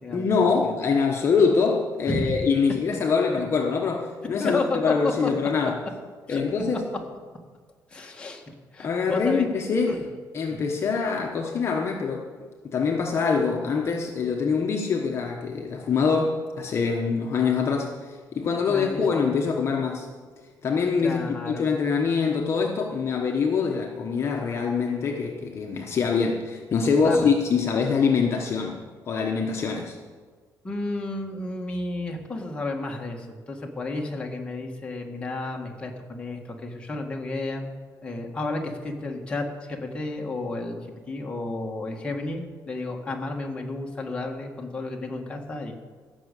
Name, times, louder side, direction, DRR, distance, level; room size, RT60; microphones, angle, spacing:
voice 1, 0.1-5.8 6.3-6.8 8.8-10.0 10.3-12.3 12.6-20.1 20.6-30.0, left 5 dB, 40° left, 1 dB, 1.1 m, -24 dB
voice 2, 2.1-2.4 2.9-3.0 4.4-5.3 6.3-6.4 7.9-8.4 8.7-10.0 10.5-10.6 18.7-19.1 21.0-21.7 27.0-27.3 30.6-37.7 38.0-40.8 41.1-45.7, left 2 dB, 15° left, 0 dB, 1.6 m, -32 dB
15.5 x 6.4 x 8.3 m, 1.5 s
cardioid pair, 155°, 7 cm